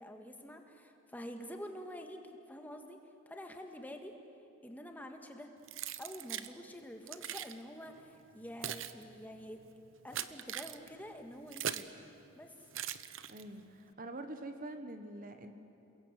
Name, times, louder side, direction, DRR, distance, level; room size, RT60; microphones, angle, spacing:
voice 1, 0.0-2.2 2.5-3.0 3.3-4.1 4.6-5.5 6.0-9.6 10.0-11.9 12.3-12.5, equal, 10° left, 4 dB, 1.8 m, -47 dB
Keys jangling, 5.7-6.5 7.1-7.5 8.3-12.0 12.7-13.6, right 10 dB, 70° right, 0.9 m, -41 dB
voice 2, 13.3-15.5, right 1 dB, 40° right, 7 dB, 1.3 m, -45 dB
29.0 x 22.0 x 8.3 m, 2.9 s
head